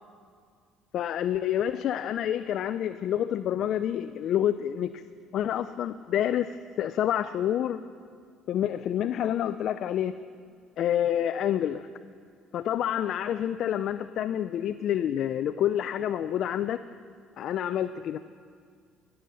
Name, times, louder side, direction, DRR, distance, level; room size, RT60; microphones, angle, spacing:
voice 1, 0.9-5.0 5.3-7.8 8.5-10.1 10.8-11.9 12.5-16.8 17.4-18.2, left 10 dB, 60° left, 12 dB, 0.3 m, -28 dB
17.0 x 6.9 x 6.4 m, 2.1 s
supercardioid pair, 85°, 0 cm